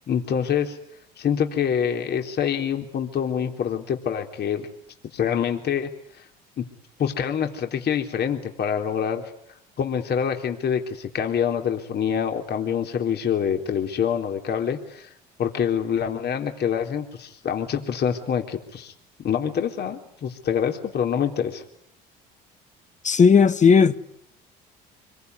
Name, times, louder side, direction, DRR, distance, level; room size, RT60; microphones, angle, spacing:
voice 1, 0.1-0.8 1.2-4.7 5.1-5.9 6.6-6.7 7.0-9.2 9.8-15.1 15.4-18.9 19.2-21.6, left 8 dB, 50° left, 3.7 m, -26 dB
voice 2, 23.0-24.0, left 6 dB, 35° left, 1.8 m, -15 dB
26.0 x 22.5 x 9.7 m
supercardioid pair, 70°, 21 cm